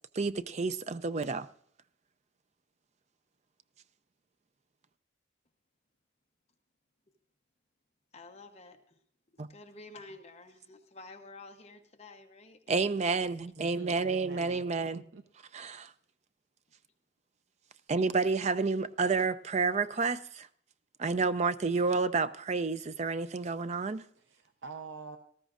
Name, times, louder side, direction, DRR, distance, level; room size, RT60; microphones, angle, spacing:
voice 1, 0.1-1.5 9.4-9.5 12.7-15.0 15.5-15.9 17.9-20.5 21.0-24.0, right 4 dB, 35° right, 0.4 m, -30 dB
voice 2, 8.1-9.0 9.5-12.9, left 3 dB, 35° left, 0.9 m, -51 dB
voice 3, 13.6-14.6 14.9-15.2 24.2-25.2, right 4 dB, 65° right, 0.7 m, -46 dB
18.5 x 14.0 x 2.5 m
head